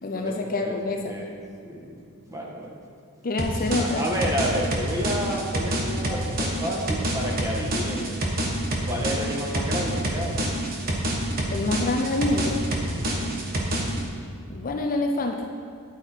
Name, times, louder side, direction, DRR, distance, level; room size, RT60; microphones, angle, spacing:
voice 1, 0.0-1.1 3.2-4.0 11.5-12.6 14.5-15.5, left 2 dB, 40° left, 3 dB, 0.6 m, -26 dB
voice 2, 0.6-1.3 1.6-2.0 2.3-2.7 3.8-8.3 8.9-10.4 12.9-13.4, equal, 15° right, -2 dB, 1.6 m, -30 dB
sound 1, 3.4-14.0, right 1 dB, 40° right, 1.4 m, -27 dB
10.5 x 8.6 x 4.5 m, 2.3 s
head